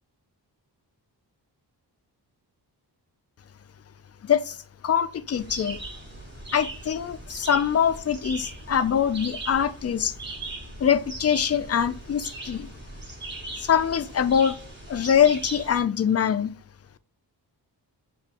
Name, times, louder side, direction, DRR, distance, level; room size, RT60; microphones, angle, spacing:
voice 1, 4.2-4.6 4.8-5.8 6.5-10.1 10.8-12.7 13.6-14.6 14.9-16.5, left 8 dB, 35° left, 0.4 m, -23 dB
sound 1, 5.3-15.8, right 2 dB, 25° right, 1.5 m, -39 dB
6.8 x 2.5 x 2.9 m
cardioid pair, 80°, 42 cm